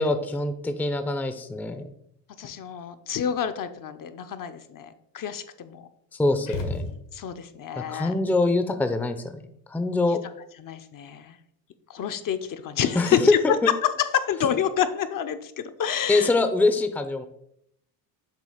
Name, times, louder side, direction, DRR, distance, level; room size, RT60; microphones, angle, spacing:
voice 1, 0.0-1.8 6.2-6.9 7.8-9.4 9.7-10.2 13.0-13.3 13.6-13.7 16.1-17.3, left 2 dB, 5° left, 9 dB, 0.6 m, -24 dB
voice 2, 2.4-5.8 7.1-8.1 10.6-11.4 11.9-13.4 14.1-16.3, left 9 dB, 45° left, 9 dB, 0.7 m, -28 dB
sound 1, 6.4-7.5, left 3 dB, 80° left, 1.7 m, -33 dB
7.4 x 2.8 x 5.6 m, 0.73 s
supercardioid pair, 85°, 44 cm